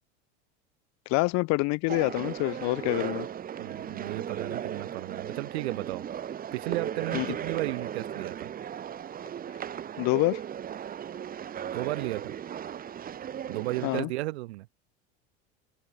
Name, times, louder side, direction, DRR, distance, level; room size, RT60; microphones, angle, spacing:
voice 1, 1.1-3.3 7.1-7.4 10.0-10.4 13.8-14.1, left 26 dB, 55° left, 0.8 m, -26 dB
sound 1, 1.9-14.0, right 9 dB, 25° right, 1.0 m, -36 dB
voice 2, 3.6-6.1 6.5-8.5 11.7-12.3 13.5-14.7, right 20 dB, 80° right, 2.7 m, -34 dB
supercardioid pair, 105°, 32 cm